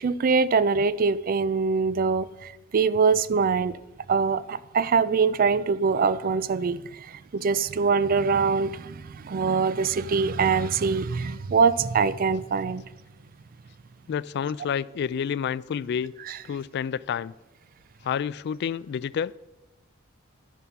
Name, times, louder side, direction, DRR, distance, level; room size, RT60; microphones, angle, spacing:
voice 1, 0.0-3.8 4.1-12.8 16.3-16.4, right 5 dB, 45° right, 0.4 m, -23 dB
voice 2, 14.1-16.1 16.5-17.3 18.0-19.3, left 7 dB, 55° left, 0.3 m, -29 dB
10.5 x 7.3 x 5.8 m
head